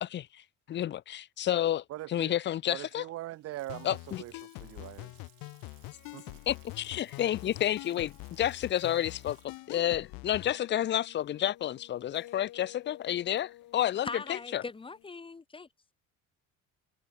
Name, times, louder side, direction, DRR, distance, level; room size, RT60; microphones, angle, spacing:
voice 1, 0.7-1.0 1.4-3.0 3.8-4.2 6.5-14.6, left 11 dB, 35° left, 0.5 m, -30 dB
voice 2, 1.9-2.3 2.7-4.3 4.6-5.1 6.1-6.4, right 15 dB, 45° right, 0.7 m, -41 dB
Water tap faucet / Sink (filling or washing) / Splash splatter, 3.3-12.0, right 21 dB, 90° right, 3.9 m, -64 dB
sound 1, 3.7-10.5, left 22 dB, 90° left, 2.0 m, -45 dB
sound 2, 5.9-10.2 10.4-15.1, left 15 dB, 65° left, 5.7 m, -55 dB
voice 3, 14.0-15.7, left 4 dB, 15° left, 1.1 m, -40 dB
cardioid pair, 150°, 34 cm